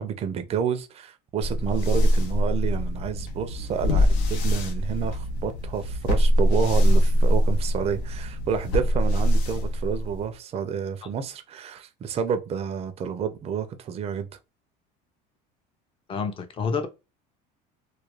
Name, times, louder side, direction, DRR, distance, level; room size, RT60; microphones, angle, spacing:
voice 1, 0.0-14.3, right 7 dB, 30° right, 0.4 m, -29 dB
sound 1, 1.4-10.3, equal, 80° left, 0.7 m, -23 dB
voice 2, 16.1-16.9, left 5 dB, 25° left, 0.5 m, -28 dB
2.3 x 2.1 x 3.1 m
supercardioid pair, 120°, 21 cm